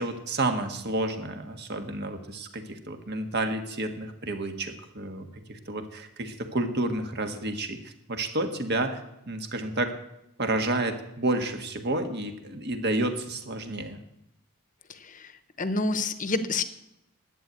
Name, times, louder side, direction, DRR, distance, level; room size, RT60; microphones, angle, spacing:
voice 1, 0.0-9.0 9.3-9.9 10.4-14.0, right 2 dB, 50° right, 6 dB, 1.5 m, -30 dB
voice 2, 14.9-15.3 15.6-16.6, left 3 dB, 35° left, 12 dB, 0.9 m, -28 dB
11.5 x 9.2 x 8.2 m, 0.85 s
head